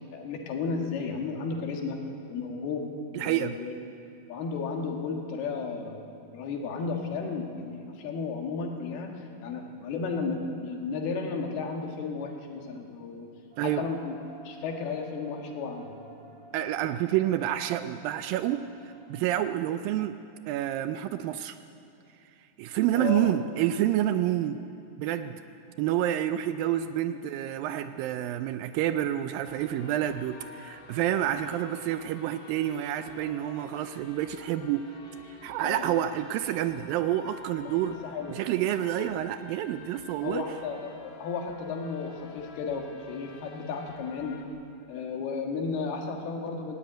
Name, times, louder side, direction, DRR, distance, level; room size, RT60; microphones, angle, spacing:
voice 1, 0.1-2.0 2.3-2.9 3.2-3.7 4.3-6.1 6.3-13.3 13.6-14.2 14.5-15.9 23.0-23.4 35.6-35.9 37.7-38.4 40.2-44.4 44.9-46.8, left 4 dB, 80° left, 2 dB, 3.7 m, -33 dB
voice 2, 3.1-3.6 13.6-13.9 16.5-20.2 20.5-21.6 22.6-24.6 25.0-25.4 25.8-34.9 35.4-38.0 38.3-40.4, right 12 dB, 80° right, 10 dB, 2.1 m, -28 dB
sound 1, 13.5-19.3, equal, 45° right, 5.2 m, -54 dB
sound 2, 29.4-44.4, left 5 dB, 60° left, 3.0 m, -49 dB
18.5 x 17.0 x 8.8 m, 2.8 s
omnidirectional pair, 4.4 m